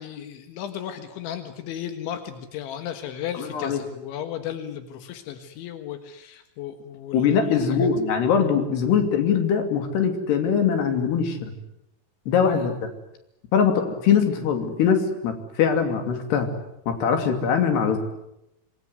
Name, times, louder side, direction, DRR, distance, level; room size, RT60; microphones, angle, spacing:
voice 1, 0.0-7.9 12.5-12.7, left 10 dB, 90° left, 8 dB, 4.0 m, -35 dB
voice 2, 3.4-3.8 7.1-11.5 12.3-12.9 13.5-16.5 16.9-18.0, left 7 dB, 65° left, 6 dB, 4.8 m, -22 dB
27.0 x 21.0 x 9.6 m, 0.82 s
omnidirectional pair, 5.1 m